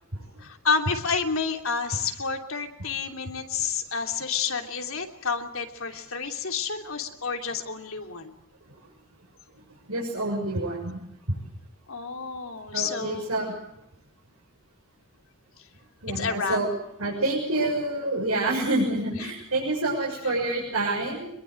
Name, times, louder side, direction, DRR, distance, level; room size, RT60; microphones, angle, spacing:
voice 1, 0.4-8.3 11.9-13.3 16.1-16.6 19.2-19.3, left 5 dB, 70° left, 4 dB, 3.1 m, -29 dB
voice 2, 9.9-11.0 11.3-11.4 12.7-13.5 16.0-16.7 17.0-21.3, right 2 dB, 90° right, -3 dB, 6.5 m, -27 dB
24.5 x 22.0 x 7.8 m, 0.79 s
head